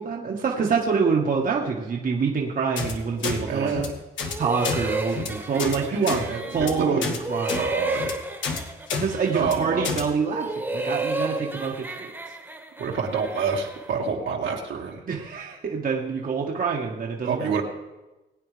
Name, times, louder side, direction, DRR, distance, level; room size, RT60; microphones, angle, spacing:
voice 1, 0.0-3.7 4.4-6.3 6.5-7.7 9.0-12.1 15.1-17.5, right 5 dB, 45° right, -1 dB, 1.6 m, -26 dB
sound 1, 2.8-2.9 3.2-3.4 3.7-3.9 4.2-4.3 4.6-4.8 5.1-5.3 5.6-5.8 6.0-6.2 6.5-6.7 7.0-7.2 7.5-7.6 7.9-8.1 8.4-8.6 8.9-9.0 9.3-9.5 9.8-10.0, left 5 dB, 70° left, 1.7 m, -29 dB
voice 2, 3.4-3.9 5.5-7.2 7.6-8.1 9.2-9.9 12.8-15.0 17.2-17.6, right 5 dB, 70° right, 0 dB, 2.1 m, -28 dB
sound 2, 4.2-6.9 7.2-9.8 10.2-14.0, right 2 dB, 10° right, 1.7 m, -33 dB
21.5 x 9.0 x 3.4 m, 1.1 s
cardioid pair, 90°, 20 cm